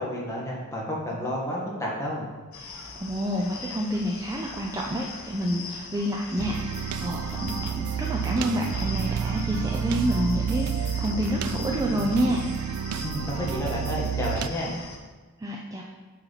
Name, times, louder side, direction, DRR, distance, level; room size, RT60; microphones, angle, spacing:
voice 1, 0.0-2.3 13.0-14.7, left 1 dB, 15° left, -4 dB, 1.5 m, -30 dB
sound 1, 2.5-15.0, left 4 dB, 65° left, 0.9 m, -41 dB
voice 2, 3.0-12.4 15.4-15.8, equal, 15° right, -1 dB, 0.4 m, -28 dB
sound 2, 6.4-14.5, right 8 dB, 80° right, 0.3 m, -30 dB
8.7 x 4.3 x 4.1 m, 1.3 s
head